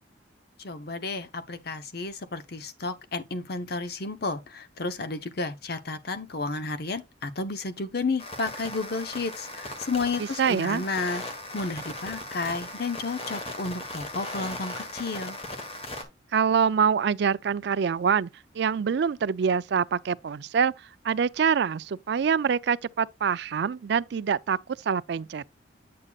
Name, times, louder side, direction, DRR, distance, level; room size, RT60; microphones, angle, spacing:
voice 1, 0.6-11.2 11.5-15.4, left 3 dB, 55° left, 0.8 m, -32 dB
sound 1, 8.2-16.0, left 1 dB, 30° left, 1.3 m, -38 dB
voice 2, 10.4-10.8 16.3-18.3 18.5-20.7 21.0-24.6 24.9-25.4, right 6 dB, 60° right, 0.3 m, -25 dB
8.5 x 6.5 x 2.3 m
head